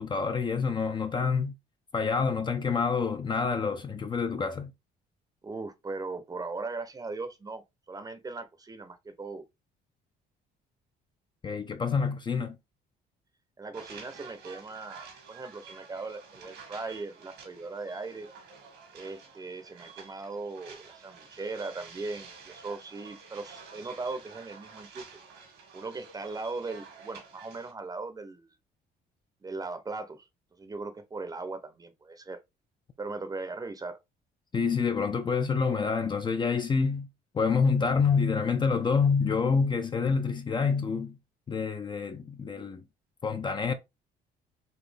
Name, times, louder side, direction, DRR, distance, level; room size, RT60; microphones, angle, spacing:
voice 1, 0.0-1.6 1.9-4.7 11.4-12.6 34.5-37.1 37.3-41.2 41.5-42.8 43.2-43.7, left 5 dB, 25° left, 0.5 m, -27 dB
voice 2, 5.4-9.4 13.6-18.3 18.9-25.0 25.7-28.5 29.4-32.4 33.0-34.0, right 3 dB, 20° right, 0.7 m, -39 dB
sound 1, 13.7-27.7, right 5 dB, 90° right, 1.8 m, -50 dB
4.1 x 2.7 x 3.3 m
cardioid pair, 110°, 17 cm